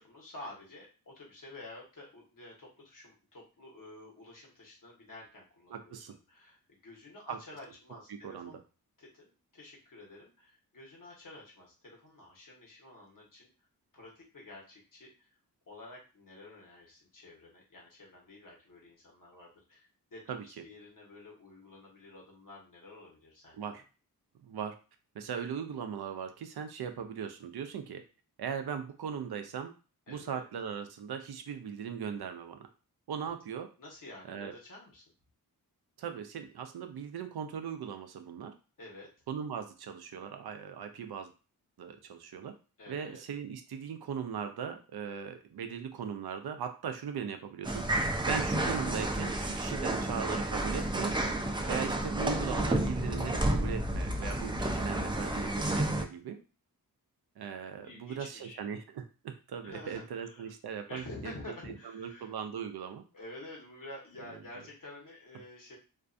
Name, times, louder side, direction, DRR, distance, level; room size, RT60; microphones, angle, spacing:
voice 1, 0.0-8.6 9.0-13.5 13.9-15.4 15.7-23.8 30.1-30.4 33.8-35.0 38.8-39.1 42.8-43.2 57.8-58.6 59.6-60.5 60.9-62.3 63.1-65.8, left 2 dB, 60° left, -2 dB, 1.1 m, -50 dB
voice 2, 5.7-6.1 7.3-7.4 8.1-8.5 20.3-20.4 23.5-23.8 24.4-24.7 25.1-28.0 28.4-29.7 30.1-32.7 33.1-33.7 34.3-34.5 36.0-38.5 39.3-41.3 41.8-42.5 42.9-47.8 48.3-51.1 51.7-56.4 57.4-61.3 61.9-63.0, right 7 dB, 80° right, 7 dB, 0.5 m, -39 dB
sound 1, 47.6-56.0, right 1 dB, 15° right, 0.4 m, -31 dB
2.5 x 2.3 x 2.5 m, 0.33 s
wide cardioid pair, 70°, 37 cm